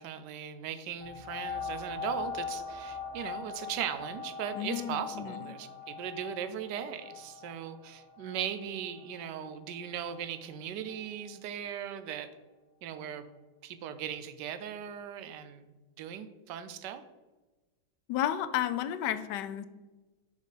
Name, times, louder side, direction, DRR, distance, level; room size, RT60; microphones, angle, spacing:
voice 1, 0.0-12.3 12.8-13.3 13.6-15.7 16.0-17.0, right 9 dB, 85° right, 11 dB, 1.2 m, -38 dB
sound 1, 1.0-10.3 10.9-11.0, left 5 dB, 20° left, 1.3 m, -42 dB
voice 2, 4.5-5.5 18.1-19.7, left 11 dB, 80° left, 13 dB, 1.2 m, -32 dB
6.5 x 5.2 x 4.9 m, 1.2 s
omnidirectional pair, 1.8 m